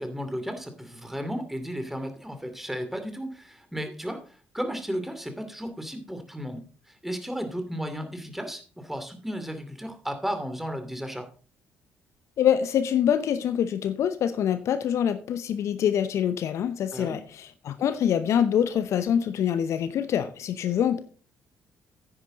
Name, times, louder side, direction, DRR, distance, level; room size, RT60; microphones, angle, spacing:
voice 1, 0.0-11.3 16.9-17.2, equal, 5° right, 7 dB, 2.6 m, -34 dB
voice 2, 12.4-21.0, left 9 dB, 60° left, 13 dB, 0.7 m, -25 dB
9.8 x 9.6 x 3.8 m, 0.39 s
hypercardioid pair, 45°, 6 cm